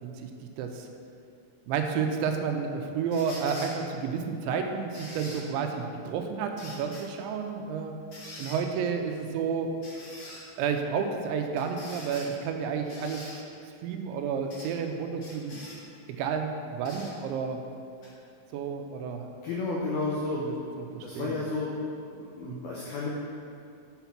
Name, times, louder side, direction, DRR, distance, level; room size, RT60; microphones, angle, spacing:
voice 1, 0.6-0.9 1.7-8.0 8.4-9.7 10.6-13.2 13.8-15.6 16.2-17.6 18.5-19.3 20.4-21.4 22.4-22.6, right 6 dB, 80° right, 4 dB, 2.9 m, -31 dB
sound 1, 3.1-3.7 4.9-5.4 6.6-7.0 8.1-8.6 9.8-10.4 11.6-12.3 12.9-13.4 14.5-14.7 15.2-15.8 16.8-17.1 18.0-18.1, left 1 dB, 55° left, 1.6 m, -44 dB
voice 2, 19.4-20.4 21.0-21.7 22.1-23.1, left 3 dB, 80° left, -5 dB, 2.2 m, -32 dB
7.0 x 6.2 x 5.9 m, 2.4 s
omnidirectional pair, 5.4 m